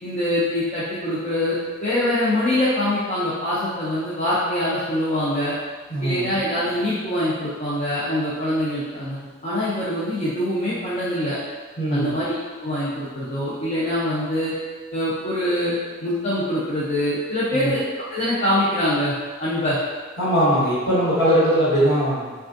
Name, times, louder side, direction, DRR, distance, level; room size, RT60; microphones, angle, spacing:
voice 1, 0.0-5.5 6.0-11.4 11.9-14.5 14.9-15.7 16.0-17.8 18.1-19.1 19.4-19.8, left 1 dB, 30° left, -10 dB, 0.5 m, -24 dB
voice 2, 5.9-6.4 11.8-12.2 17.5-17.7 20.2-22.3, equal, 50° left, -10 dB, 1.3 m, -20 dB
3.2 x 2.3 x 2.6 m, 1.4 s
head